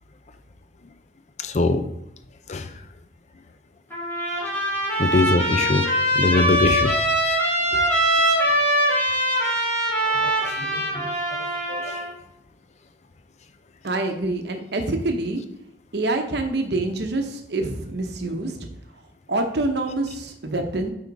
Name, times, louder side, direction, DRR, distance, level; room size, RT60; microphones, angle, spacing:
voice 1, 1.4-1.8 2.5-2.7 5.0-5.9 6.2-6.9 10.2-11.1 11.7-12.0, left 3 dB, 40° left, 9 dB, 0.5 m, -22 dB
Trumpet, 3.9-12.1, right 1 dB, 10° left, 2.5 m, -22 dB
voice 2, 13.8-15.4 15.9-18.6 19.3-20.9, right 2 dB, 65° right, 5 dB, 0.9 m, -26 dB
7.8 x 3.7 x 4.7 m, 0.80 s
head